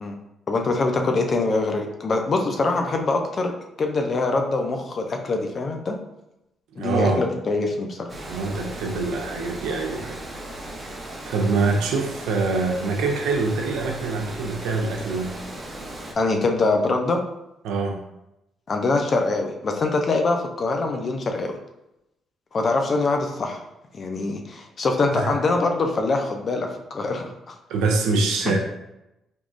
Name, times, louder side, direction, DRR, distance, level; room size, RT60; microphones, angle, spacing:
voice 1, 0.5-3.5 3.8-6.0 6.8-8.1 16.2-17.2 18.7-21.5 22.5-23.6 23.9-27.5 28.4-28.6, left 3 dB, 45° left, 4 dB, 0.5 m, -24 dB
voice 2, 6.8-7.3 8.3-10.2 11.3-15.3 17.6-18.0 25.2-25.3 27.7-28.6, right 3 dB, 90° right, 2 dB, 0.4 m, -24 dB
Water, 8.1-16.1, right 1 dB, 25° right, 0.7 m, -37 dB
3.6 x 3.0 x 2.5 m, 0.89 s
cardioid pair, 90°, 0 cm